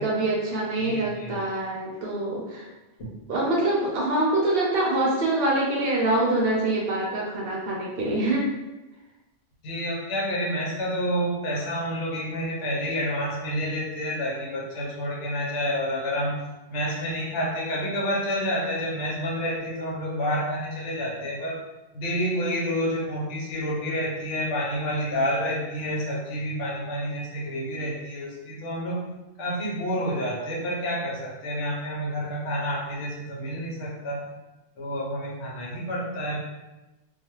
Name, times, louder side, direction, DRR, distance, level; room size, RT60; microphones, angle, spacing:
voice 1, 0.0-2.7 3.3-8.5, right 2 dB, 60° right, -4 dB, 0.7 m, -25 dB
voice 2, 0.8-1.4 3.0-3.1 9.6-16.4 16.7-21.6 21.9-29.0 29.4-34.3 34.8-36.4, equal, 75° left, -3 dB, 1.0 m, -29 dB
2.4 x 2.3 x 2.9 m, 1.1 s
omnidirectional pair, 1.3 m